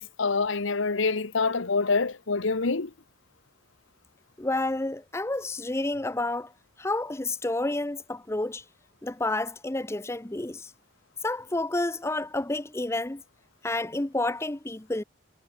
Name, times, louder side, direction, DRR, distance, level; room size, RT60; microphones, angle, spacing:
voice 1, 0.0-2.9, left 4 dB, 75° left, 1.1 m, -26 dB
voice 2, 4.4-6.5 6.8-8.6 9.0-10.7 11.2-13.2 13.6-15.0, left 2 dB, 15° left, 0.6 m, -30 dB
head